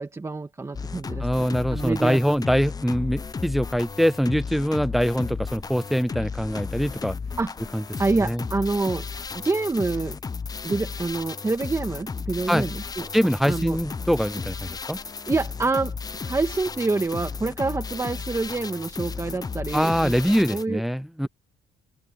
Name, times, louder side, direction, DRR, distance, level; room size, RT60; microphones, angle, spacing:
voice 1, 0.0-2.4 7.4-7.5 8.0-9.1 9.3-10.2 10.6-13.1 13.5-13.8 15.3-20.8, right 3 dB, 15° right, 2.3 m, -27 dB
sound 1, 0.7-20.6, left 5 dB, 20° left, 0.8 m, -34 dB
voice 2, 1.2-7.1 7.7-7.8 8.2-8.4 12.5-12.7 13.1-15.0 19.7-21.3, equal, ahead, 0.4 m, -23 dB
cardioid pair, 110°, 17 cm